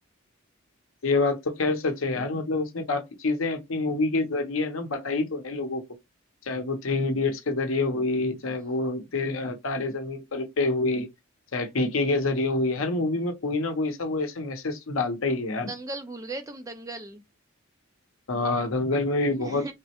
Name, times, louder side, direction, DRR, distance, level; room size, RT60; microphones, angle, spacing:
voice 1, 1.0-5.8 6.5-11.1 11.5-15.7 18.3-19.7, left 3 dB, 70° left, 0.7 m, -27 dB
voice 2, 15.7-17.2 19.4-19.7, right 2 dB, 15° right, 0.3 m, -37 dB
3.5 x 2.1 x 2.8 m
head